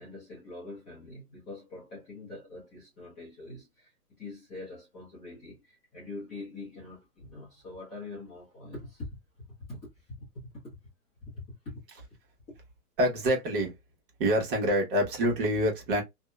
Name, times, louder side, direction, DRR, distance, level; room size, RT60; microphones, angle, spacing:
voice 1, 0.0-9.1 9.6-10.8 11.2-11.8 12.5-12.6, left 2 dB, 15° left, 0.5 m, -44 dB
voice 2, 13.0-13.7 14.2-16.0, equal, 35° right, 1.0 m, -26 dB
2.7 x 2.1 x 2.2 m
hypercardioid pair, 140°, 47 cm